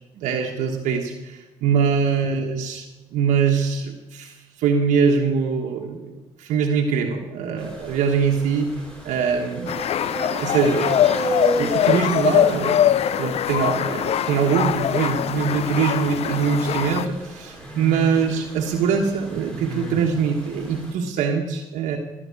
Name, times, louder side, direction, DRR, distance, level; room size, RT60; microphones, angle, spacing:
voice 1, 0.2-2.9 3.1-6.1 6.4-8.7 9.0-9.8 10.3-11.0 11.6-12.8 13.2-22.0, right 6 dB, 75° right, 1 dB, 1.2 m, -23 dB
sound 1, 7.6-20.9, right 1 dB, 10° left, 4.4 m, -34 dB
sound 2, 9.7-17.1, left 10 dB, 55° left, 0.5 m, -22 dB
17.0 x 5.8 x 8.4 m, 1.1 s
supercardioid pair, 65°, 12 cm